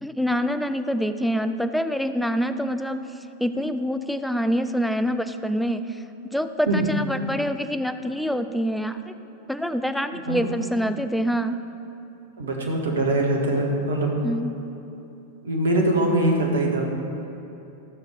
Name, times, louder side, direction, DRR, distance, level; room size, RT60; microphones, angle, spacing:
voice 1, 0.0-6.0 6.3-9.1 9.5-11.6 14.2-14.6, equal, ahead, 9 dB, 0.4 m, -26 dB
voice 2, 12.4-14.1 15.4-16.8, right 1 dB, 65° right, 0 dB, 1.6 m, -22 dB
12.5 x 6.4 x 5.0 m, 2.9 s
figure-of-eight pair, 90°, 0 cm